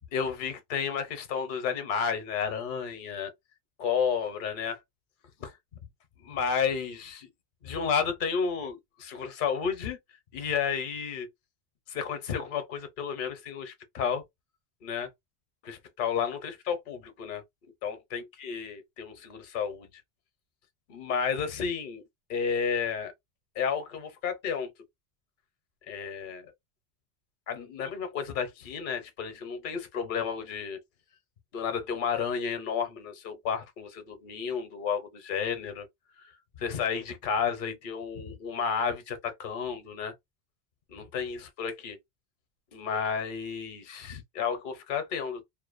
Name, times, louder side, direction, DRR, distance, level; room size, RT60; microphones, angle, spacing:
voice 1, 0.1-3.3 3.8-4.8 5.4-5.6 6.2-7.3 7.6-10.0 10.3-11.3 11.9-14.2 14.8-15.1 15.6-17.4 17.8-19.9 20.9-22.0 22.3-23.1 23.6-24.7 25.9-26.5 27.5-30.8 31.5-35.9 36.2-36.3 36.6-40.1 40.9-42.0 42.7-45.4, left 6 dB, 55° left, 0.8 m, -32 dB
2.5 x 2.2 x 2.3 m
omnidirectional pair, 1.1 m